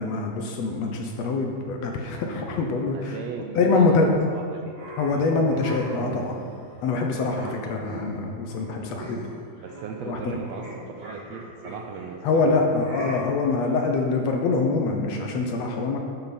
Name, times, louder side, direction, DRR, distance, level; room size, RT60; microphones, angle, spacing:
voice 1, 0.0-3.2 3.6-4.1 5.0-6.4 6.8-9.2 10.0-10.4 12.2-16.0, left 3 dB, 70° left, 2 dB, 1.8 m, -24 dB
voice 2, 2.9-4.8 7.3-7.6 9.5-10.6 11.0-12.9, right 6 dB, 80° right, 3 dB, 1.6 m, -38 dB
sound 1, 4.7-6.9 7.4-8.2 8.5-8.7 9.0-9.4 9.7-12.1 12.8-13.2, right 1 dB, 25° right, 1.6 m, -39 dB
12.0 x 6.8 x 4.2 m, 2.3 s
omnidirectional pair, 3.5 m